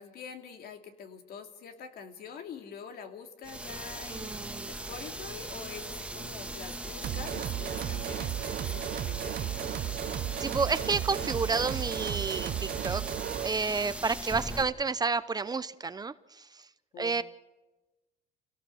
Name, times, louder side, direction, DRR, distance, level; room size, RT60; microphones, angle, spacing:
voice 1, 0.0-4.6 4.9-9.7 14.2-14.6 16.9-17.2, left 6 dB, 65° left, 5 dB, 2.7 m, -45 dB
sound 1, 3.4-14.6, right 1 dB, 5° right, 1.5 m, -39 dB
voice 2, 4.1-4.7 10.4-13.0 13.4-16.7 17.0-17.2, right 4 dB, 25° right, 15 dB, 0.7 m, -30 dB
sound 2, 7.0-13.6, right 12 dB, 60° right, 0.8 m, -34 dB
28.0 x 17.5 x 6.4 m, 1.1 s
cardioid pair, 110°, 17 cm